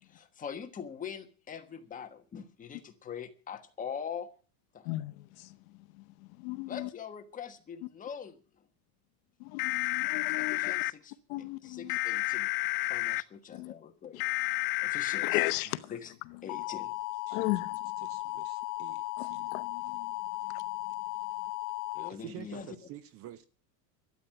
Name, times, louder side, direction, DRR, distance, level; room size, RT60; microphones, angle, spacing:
voice 1, 0.0-4.3 4.7-4.9 6.7-8.4 10.4-11.1 11.6-12.5 12.9-14.2 14.8-15.4 15.9-16.1 16.4-17.0 21.9-22.7, left 7 dB, 15° left, 1.3 m, -42 dB
voice 2, 4.8-6.9 9.4-10.7 11.3-12.0 13.5-13.7 14.1-14.2 15.2-15.9 17.3-17.9 19.2-20.1 20.4-20.6, left 18 dB, 55° left, 0.9 m, -36 dB
sound 1, 9.6-10.9 11.9-13.2 14.2-15.5 16.5-22.1, left 22 dB, 85° left, 0.8 m, -33 dB
voice 3, 17.3-17.6 18.0-19.5 22.1-23.5, right 13 dB, 30° right, 0.6 m, -48 dB
13.0 x 9.3 x 8.8 m
supercardioid pair, 165°, 48 cm